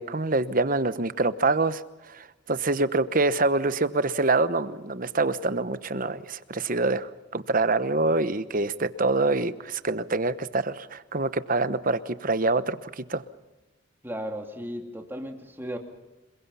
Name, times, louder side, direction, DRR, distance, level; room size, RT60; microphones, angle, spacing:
voice 1, 0.0-1.8 2.1-13.2, right 3 dB, 40° right, 13 dB, 1.0 m, -25 dB
voice 2, 14.0-15.8, equal, 10° right, 3 dB, 2.7 m, -35 dB
28.5 x 22.0 x 5.6 m, 1.1 s
head